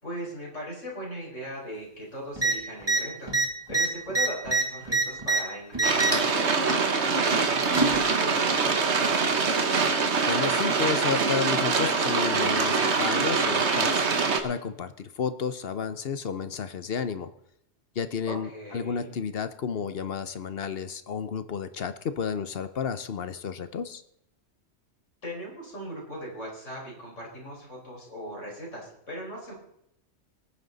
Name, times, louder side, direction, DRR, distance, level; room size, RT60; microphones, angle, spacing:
voice 1, 0.0-3.3 3.7-9.2 18.3-19.2 25.2-29.5, equal, 75° left, -3 dB, 5.0 m, -39 dB
sound 1, 2.4-2.5 2.8-3.0 3.3-5.4 5.7-6.3 7.3-8.0 9.0-9.1, right 3 dB, 20° right, 1.8 m, -25 dB
sound 2, 5.8-14.4, right 4 dB, 65° right, 1.5 m, -24 dB
voice 2, 10.3-14.1 14.4-17.3 18.0-24.0, left 6 dB, 55° left, 12 dB, 1.0 m, -31 dB
19.0 x 9.6 x 4.0 m, 0.76 s
omnidirectional pair, 1.3 m